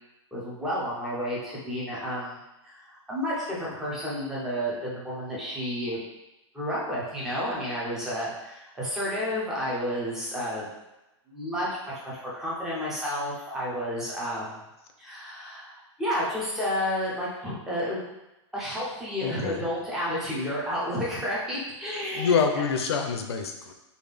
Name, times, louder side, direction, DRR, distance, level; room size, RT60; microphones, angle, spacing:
voice 1, 0.3-2.4 2.6-6.0 6.5-10.7 11.3-14.6 15.0-18.0 18.5-22.6, equal, 5° right, -7 dB, 0.5 m, -31 dB
voice 2, 19.2-19.6 22.1-23.7, left 6 dB, 60° left, 5 dB, 0.5 m, -26 dB
3.4 x 2.3 x 3.3 m, 0.96 s
supercardioid pair, 175°, 15 cm